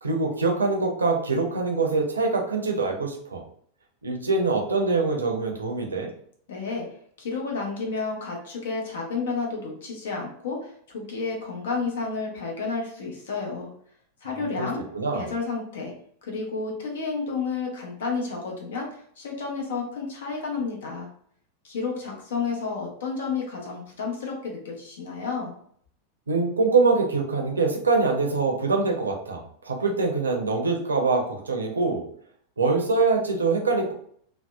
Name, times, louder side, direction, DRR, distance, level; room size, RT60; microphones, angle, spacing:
voice 1, 0.0-3.4 4.0-6.1 14.6-14.7 14.9-15.3 26.3-32.0 32.6-33.9, right 3 dB, 75° right, 1 dB, 0.5 m, -24 dB
voice 2, 6.5-6.9 7.2-13.7 14.2-14.9 15.1-15.9 16.2-21.1 21.6-25.5, left 4 dB, 60° left, 0 dB, 0.8 m, -31 dB
2.7 x 2.1 x 2.2 m, 0.62 s
figure-of-eight pair, 90°, 0 cm